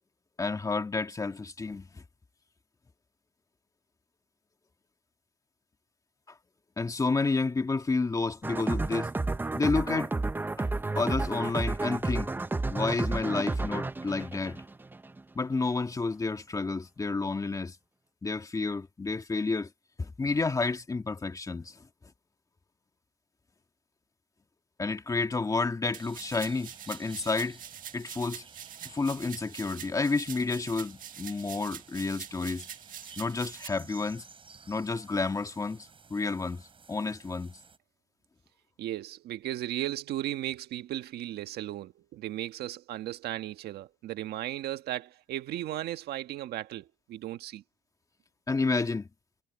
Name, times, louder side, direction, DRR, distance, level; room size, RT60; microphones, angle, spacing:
voice 1, 0.4-2.0 6.8-9.1 9.5-10.1 10.6-10.7 11.0-12.3 12.7-14.6 15.4-17.8 18.2-19.7 20.0-21.8 24.8-27.6 27.9-28.4 28.9-32.7 33.2-34.2 34.7-36.6 36.9-37.6 48.5-49.1, left 3 dB, 20° left, 2.0 m, -30 dB
sound 1, 8.4-15.2, right 3 dB, 10° right, 0.6 m, -31 dB
sound 2, 25.9-33.7, right 10 dB, 55° right, 1.5 m, -45 dB
sound 3, 26.0-37.8, right 5 dB, 30° right, 7.3 m, -54 dB
voice 2, 38.8-47.6, right 13 dB, 70° right, 1.5 m, -36 dB
cardioid pair, 110°, 17 cm